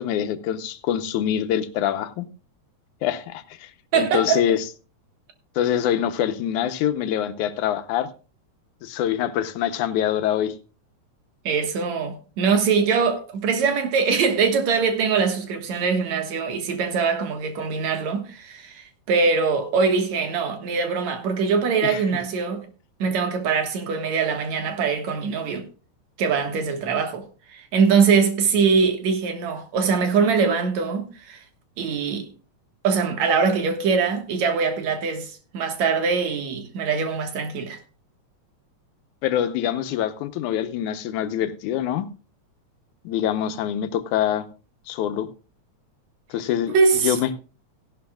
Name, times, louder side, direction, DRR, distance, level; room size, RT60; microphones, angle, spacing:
voice 1, 0.0-2.3 3.0-4.7 5.6-8.1 8.8-10.5 21.8-22.2 39.2-42.1 43.0-44.5 44.9-45.3 46.3-46.7 47.0-47.3, left 10 dB, 85° left, 2.3 m, -25 dB
voice 2, 3.9-4.4 11.4-22.7 23.0-25.7 26.2-31.4 31.8-32.3 32.8-37.8 46.7-47.2, right 5 dB, 70° right, 2.7 m, -22 dB
16.5 x 11.5 x 2.3 m
omnidirectional pair, 3.4 m